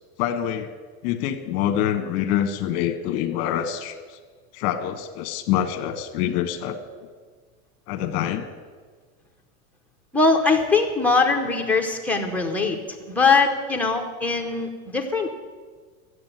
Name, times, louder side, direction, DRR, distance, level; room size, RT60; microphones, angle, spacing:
voice 1, 0.2-0.7 1.0-4.2 4.5-6.8 7.9-8.5, left 10 dB, 45° left, 8 dB, 1.2 m, -25 dB
voice 2, 10.1-15.3, left 4 dB, 5° left, 0 dB, 0.8 m, -21 dB
13.0 x 8.0 x 9.1 m, 1.5 s
supercardioid pair, 155°, 46 cm